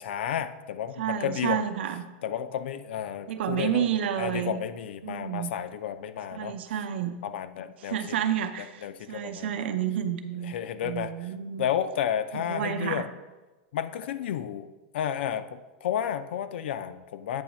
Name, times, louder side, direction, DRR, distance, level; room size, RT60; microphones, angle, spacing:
voice 1, 0.0-1.6 2.2-3.9 4.2-6.5 7.2-8.2 8.6-9.7 10.4-11.3 11.6-13.1 13.7-14.7 14.9-17.4, left 9 dB, 80° left, 11 dB, 0.4 m, -32 dB
voice 2, 1.0-2.0 3.3-4.6 5.0-5.5 6.4-7.1 7.9-10.5 10.8-11.7 12.3-13.0, right 9 dB, 80° right, 8 dB, 0.7 m, -30 dB
8.6 x 3.1 x 6.0 m, 1.2 s
supercardioid pair, 165°, 6 cm